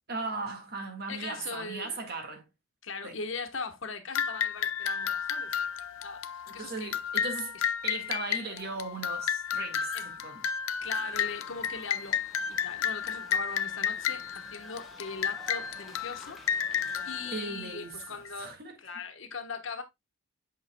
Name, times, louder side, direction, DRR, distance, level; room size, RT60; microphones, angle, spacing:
voice 1, 0.1-2.4 3.0-3.2 6.5-7.6 7.8-9.9 10.2-10.5 17.3-18.0 18.4-18.7, right 3 dB, 50° right, 1.8 m, -37 dB
voice 2, 1.1-2.0 2.8-5.8 6.0-6.9 9.9-10.2 10.8-12.2 12.5-16.4 17.0-19.8, left 4 dB, 65° left, 1.2 m, -40 dB
sound 1, 4.2-18.3, left 8 dB, 80° left, 0.5 m, -32 dB
sound 2, 10.8-17.4, left 1 dB, ahead, 1.3 m, -52 dB
8.5 x 5.8 x 2.2 m
head